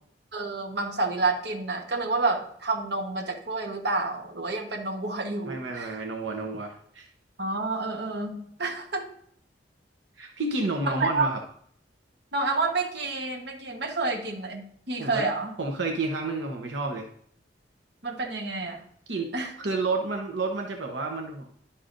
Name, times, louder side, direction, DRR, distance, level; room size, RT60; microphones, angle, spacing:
voice 1, 0.3-6.0 7.4-9.1 10.8-11.3 12.3-15.5 18.0-18.8 19.3-19.5, right 3 dB, 65° right, 2 dB, 1.2 m, -29 dB
voice 2, 5.4-7.1 10.2-11.4 15.0-15.3 15.6-17.1 19.1-19.3 19.6-21.4, right 3 dB, 85° right, 1 dB, 1.0 m, -30 dB
11.5 x 5.8 x 2.6 m, 0.62 s
head